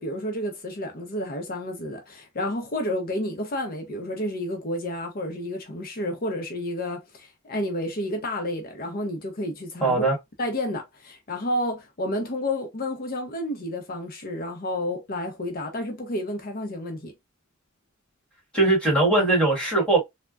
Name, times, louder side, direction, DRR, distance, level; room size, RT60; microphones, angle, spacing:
voice 1, 0.0-10.0 10.4-17.1, left 1 dB, 45° left, 0.7 m, -30 dB
voice 2, 9.8-10.2 18.5-20.0, right 2 dB, 5° left, 1.5 m, -20 dB
3.3 x 2.1 x 2.3 m
head